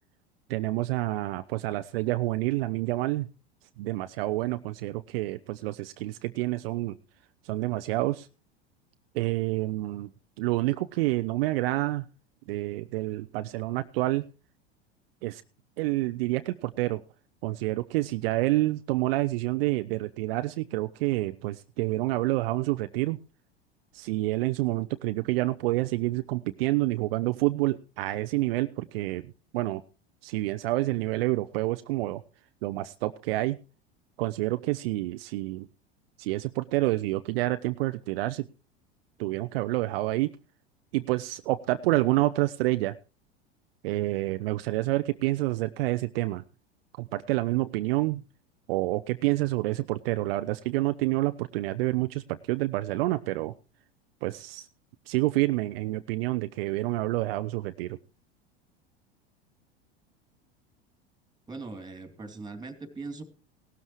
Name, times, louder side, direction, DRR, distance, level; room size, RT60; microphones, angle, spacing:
voice 1, 0.5-3.3 3.8-7.0 7.4-8.3 9.1-10.1 10.4-12.1 12.5-14.2 15.2-15.4 15.8-17.0 17.4-23.2 23.9-29.2 29.5-29.8 30.2-32.2 32.6-33.6 34.2-35.7 36.2-38.5 39.2-40.3 40.9-42.9 43.8-46.4 47.0-48.2 48.7-53.5 54.2-54.7 55.1-58.0, right 18 dB, 65° right, 10 dB, 0.7 m, -28 dB
voice 2, 61.5-63.2, right 3 dB, 15° right, 8 dB, 2.9 m, -40 dB
17.5 x 12.5 x 3.1 m, 0.33 s
hypercardioid pair, 85°, 32 cm